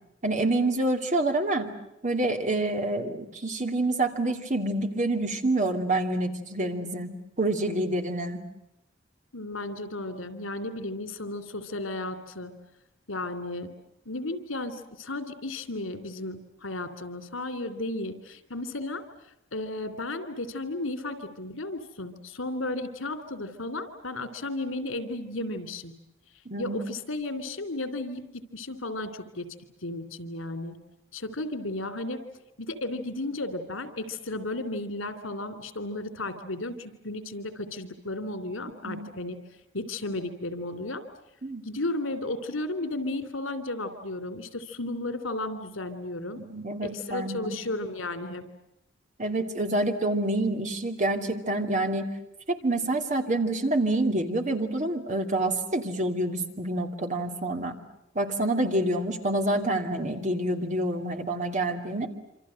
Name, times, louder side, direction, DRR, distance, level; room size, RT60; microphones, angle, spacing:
voice 1, 0.2-1.7 2.0-7.1 7.4-8.4 26.5-26.8 38.8-39.1 41.4-41.6 46.3-47.6 49.2-52.1 52.5-57.8 58.1-62.1, right 2 dB, 40° right, 5 dB, 2.7 m, -27 dB
voice 2, 9.3-12.5 13.1-13.7 14.0-19.0 19.5-25.9 26.6-28.2 28.5-29.5 29.8-30.8 31.1-32.2 32.6-39.4 39.7-41.0 41.6-46.4 46.8-48.4, left 2 dB, 90° left, 10 dB, 3.2 m, -34 dB
27.5 x 26.0 x 7.8 m, 0.86 s
head